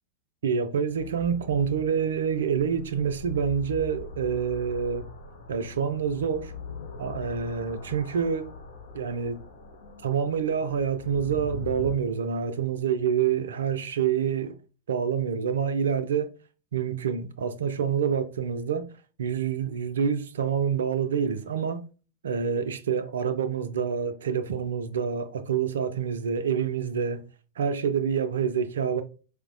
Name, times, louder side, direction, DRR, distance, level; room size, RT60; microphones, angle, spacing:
voice 1, 0.4-5.1 5.5-6.5 7.0-8.5 8.9-9.4 10.0-14.5 14.9-16.3 16.7-18.9 19.2-21.9 22.2-27.3 27.6-29.0, right 7 dB, 65° right, 0.4 m, -27 dB
sound 1, 0.8-12.0, left 4 dB, 60° left, 0.5 m, -42 dB
4.4 x 2.1 x 2.5 m
figure-of-eight pair, 90°, 0 cm